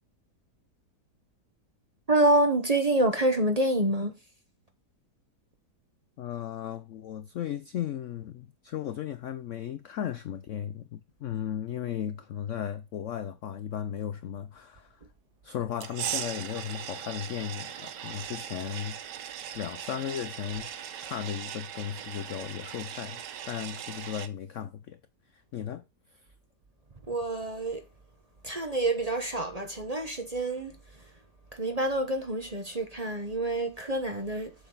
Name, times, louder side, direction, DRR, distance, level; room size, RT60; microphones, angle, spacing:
voice 1, 2.1-4.2 27.0-27.9 28.4-31.1 31.5-34.5, right 1 dB, 25° right, 1.0 m, -27 dB
voice 2, 6.2-15.0 15.4-19.0 19.5-20.7 21.0-25.0 25.3-25.8, left 9 dB, 70° left, 0.7 m, -36 dB
sound 1, 15.8-24.3, right 9 dB, 85° right, 1.5 m, -39 dB
7.4 x 6.6 x 3.9 m
omnidirectional pair, 1.8 m